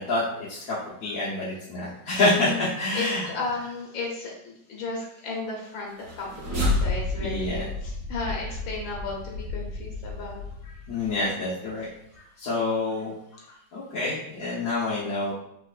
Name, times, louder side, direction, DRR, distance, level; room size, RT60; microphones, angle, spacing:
voice 1, 0.0-3.6 7.2-7.7 10.9-11.9 12.4-13.1 13.7-15.3, left 2 dB, 55° left, -8 dB, 1.2 m, -27 dB
voice 2, 2.3-2.7 2.9-11.1 12.1-12.3 13.3-13.6, left 3 dB, 80° left, -1 dB, 1.6 m, -35 dB
sound 1, 5.9-11.2, left 2 dB, 60° right, 1.4 m, -31 dB
4.5 x 4.2 x 2.4 m, 0.76 s
omnidirectional pair, 2.1 m